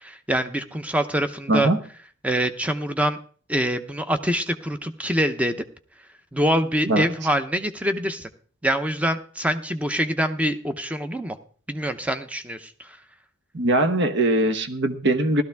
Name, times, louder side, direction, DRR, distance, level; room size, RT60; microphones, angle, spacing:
voice 1, 0.0-1.7 2.2-3.2 3.5-5.6 6.3-8.3 8.6-11.4 11.7-12.7, equal, 5° right, 9 dB, 0.8 m, -25 dB
voice 2, 1.5-1.8 6.8-7.1 13.5-15.4, right 1 dB, 55° right, 9 dB, 1.1 m, -21 dB
16.0 x 13.0 x 3.5 m, 0.44 s
head